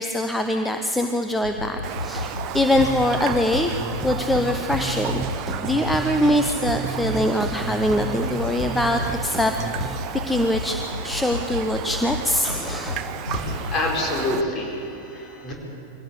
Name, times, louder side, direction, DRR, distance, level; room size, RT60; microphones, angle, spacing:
voice 1, 0.0-3.7 4.0-5.2 5.6-9.8 10.1-13.1, left 1 dB, 5° left, 5 dB, 1.0 m, -23 dB
sound 1, 1.4-14.0, left 3 dB, 80° left, 1.1 m, -33 dB
Raindrop, 1.8-14.4, right 10 dB, 35° right, 1.0 m, -34 dB
sound 2, 2.7-10.0, right 4 dB, 15° right, 1.4 m, -33 dB
voice 2, 13.3-15.5, left 1 dB, 30° left, 0 dB, 5.0 m, -27 dB
23.0 x 16.5 x 8.5 m, 2.8 s
figure-of-eight pair, 90°, 0 cm